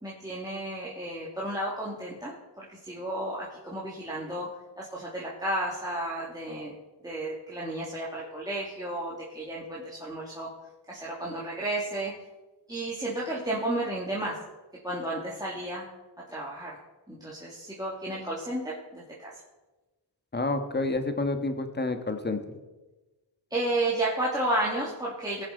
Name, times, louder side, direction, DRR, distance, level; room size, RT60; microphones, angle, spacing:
voice 1, 0.0-4.5 4.8-6.7 7.0-10.5 10.9-12.1 12.7-14.4 14.8-15.9 16.3-16.8 17.1-19.3 23.5-25.4, right 1 dB, 10° right, -6 dB, 2.5 m, -32 dB
voice 2, 20.3-22.4, left 2 dB, 25° left, 7 dB, 1.5 m, -29 dB
19.5 x 7.3 x 4.1 m, 1.1 s
cardioid pair, 65°, 44 cm